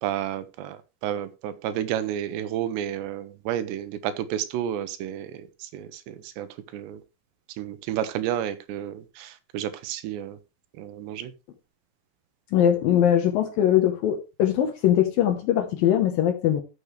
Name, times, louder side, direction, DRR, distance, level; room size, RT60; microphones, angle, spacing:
voice 1, 0.0-6.5 6.7-7.0 7.6-10.4 10.8-11.3, right 11 dB, 80° right, 3.0 m, -31 dB
voice 2, 12.5-16.6, left 10 dB, 70° left, 2.4 m, -21 dB
13.0 x 7.0 x 3.2 m
omnidirectional pair, 5.1 m